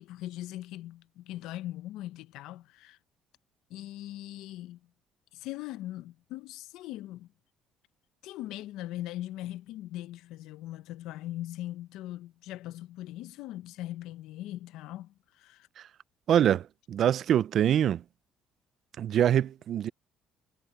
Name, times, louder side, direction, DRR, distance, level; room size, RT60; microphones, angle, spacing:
voice 1, 0.0-3.0 3.7-4.8 5.3-7.3 8.2-15.7, left 15 dB, 85° left, 0.8 m, -40 dB
voice 2, 16.3-18.0 19.0-19.9, right 10 dB, 55° right, 0.5 m, -24 dB
cardioid pair, 110°, 0 cm